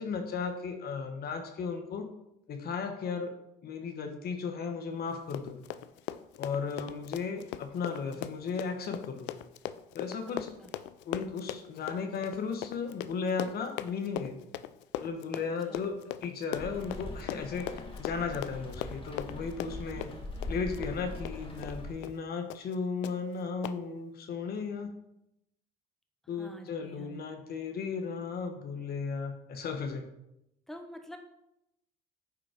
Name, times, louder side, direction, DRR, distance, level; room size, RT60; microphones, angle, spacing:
voice 1, 0.0-2.1 2.5-3.3 3.6-5.6 6.4-9.3 9.9-10.5 11.0-14.4 15.0-16.0 16.2-20.1 20.5-24.9 26.3-30.1, left 5 dB, 60° left, 5 dB, 1.2 m, -35 dB
Run, 5.1-21.8 22.0-22.2 22.5-22.8 23.0-23.1 23.6-23.8, left 13 dB, 80° left, 0.5 m, -39 dB
voice 2, 10.3-10.7 15.3-15.9 26.4-27.2 30.7-31.2, equal, ahead, 4 dB, 1.4 m, -48 dB
Rain, 16.5-21.9, left 2 dB, 30° left, 1.5 m, -42 dB
9.4 x 3.9 x 5.0 m, 0.84 s
supercardioid pair, 75°, 18 cm